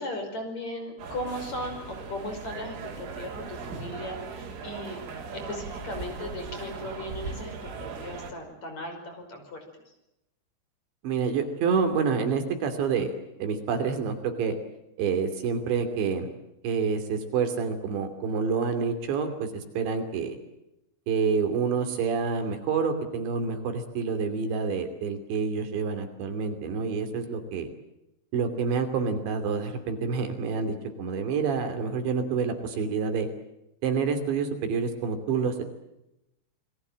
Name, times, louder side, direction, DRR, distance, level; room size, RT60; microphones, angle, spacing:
voice 1, 0.0-5.0 5.5-9.9, left 1 dB, 35° left, 5 dB, 6.4 m, -37 dB
sound 1, 1.0-8.3, right 5 dB, 90° right, 5.9 m, -39 dB
voice 2, 11.0-13.1 13.4-14.5 15.0-16.3 16.6-20.4 21.1-27.7 28.3-33.3 33.8-35.6, right 5 dB, 70° right, 7 dB, 5.0 m, -28 dB
28.5 x 22.0 x 7.6 m, 0.88 s
omnidirectional pair, 5.4 m